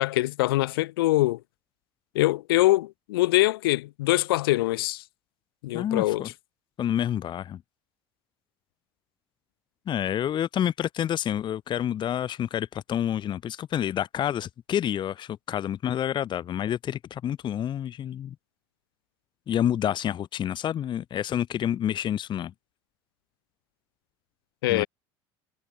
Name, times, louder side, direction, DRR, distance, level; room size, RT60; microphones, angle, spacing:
voice 1, 0.0-1.4 2.1-5.0 5.6-6.2 24.6-24.9, left 18 dB, 90° left, 2.2 m, -23 dB
voice 2, 5.7-6.3 6.8-7.6 9.9-18.3 19.5-22.5 24.7-24.8, left 10 dB, 40° left, 1.0 m, -28 dB
supercardioid pair, 95°, 12 cm